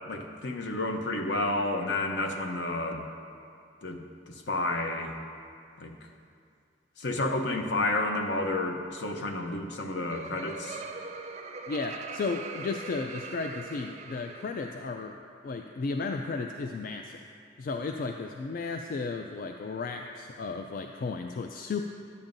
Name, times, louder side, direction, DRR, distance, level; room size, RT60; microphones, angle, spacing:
voice 1, 0.1-3.0 3.8-5.1 5.8-5.9 7.0-10.8, left 2 dB, 70° left, 4 dB, 0.7 m, -30 dB
Laughter, 9.6-14.8, right 4 dB, 35° right, 0.5 m, -42 dB
voice 2, 11.7-15.2 15.4-17.2 17.6-21.8, left 4 dB, 50° left, 4 dB, 0.3 m, -34 dB
11.5 x 8.8 x 2.6 m, 2.3 s
head